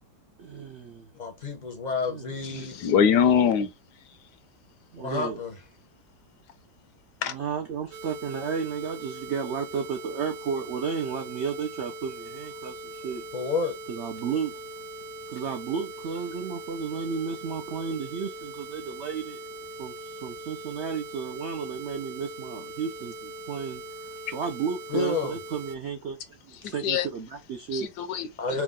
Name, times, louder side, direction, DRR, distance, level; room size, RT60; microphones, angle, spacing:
voice 1, 0.4-1.1 2.1-2.7 4.9-5.4 7.2-13.2 13.9-14.6 15.3-19.4 19.8-26.2 26.4-27.9, right 6 dB, 70° right, 0.6 m, -33 dB
voice 2, 1.1-2.8 5.0-5.6 13.3-13.8 24.9-25.4 28.4-28.6, left 4 dB, 40° left, 0.6 m, -30 dB
voice 3, 2.5-3.7 7.2-7.3 26.8-27.1 27.7-28.3, left 7 dB, 75° left, 1.2 m, -22 dB
sound 1, 7.9-25.8, right 2 dB, 85° right, 1.3 m, -41 dB
4.6 x 2.3 x 3.7 m
omnidirectional pair, 1.9 m